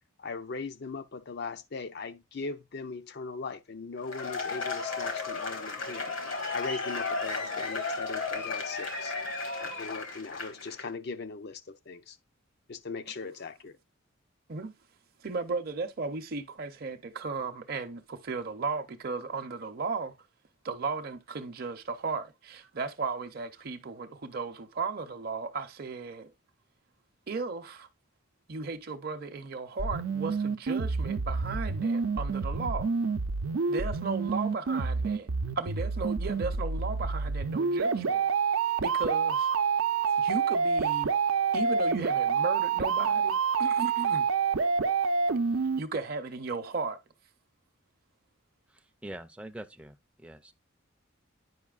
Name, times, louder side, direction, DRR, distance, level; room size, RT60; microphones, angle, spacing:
voice 1, 0.2-6.1 6.5-9.1 9.6-12.2 12.7-13.8, left 4 dB, 55° left, 0.6 m, -39 dB
Cheering / Applause / Crowd, 4.0-10.8, left 4 dB, 70° left, 1.7 m, -34 dB
voice 2, 15.2-20.1 20.6-26.3 27.3-27.9 28.5-32.9 33.7-35.3 35.6-38.3 38.8-39.5 40.2-41.1 41.5-44.3 45.8-47.0, right 4 dB, 50° right, 0.6 m, -35 dB
sound 1, 29.8-45.8, right 5 dB, 90° right, 0.6 m, -28 dB
voice 3, 49.0-50.5, right 1 dB, 5° right, 0.4 m, -44 dB
9.4 x 5.4 x 2.4 m
head